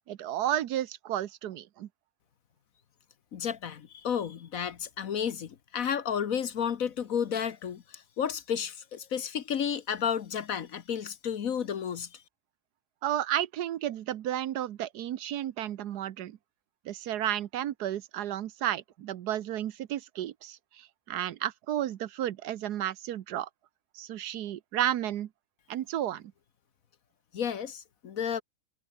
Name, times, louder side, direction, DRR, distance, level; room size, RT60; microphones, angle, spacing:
voice 1, 0.1-1.9 13.0-16.4 16.8-23.5 23.9-25.3 25.7-26.3, right 12 dB, 80° right, 1.4 m, -32 dB
voice 2, 3.3-12.1 27.3-28.4, left 8 dB, 60° left, 1.4 m, -32 dB
omnidirectional pair, 1.7 m